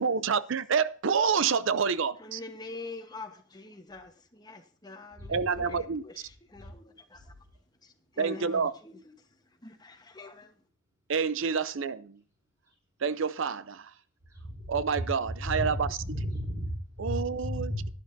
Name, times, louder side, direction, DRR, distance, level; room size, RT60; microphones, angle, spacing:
voice 1, 0.0-2.4 5.3-6.0 8.2-8.7 11.1-12.2 13.0-13.9 14.7-15.7 17.0-17.7, right 6 dB, 70° right, 0.5 m, -28 dB
voice 2, 2.2-7.3 7.8-9.0 9.6-10.5, left 3 dB, 20° left, 1.2 m, -45 dB
voice 3, 14.4-15.0 15.4-17.9, equal, 25° right, 4.4 m, -34 dB
11.5 x 11.5 x 2.7 m
head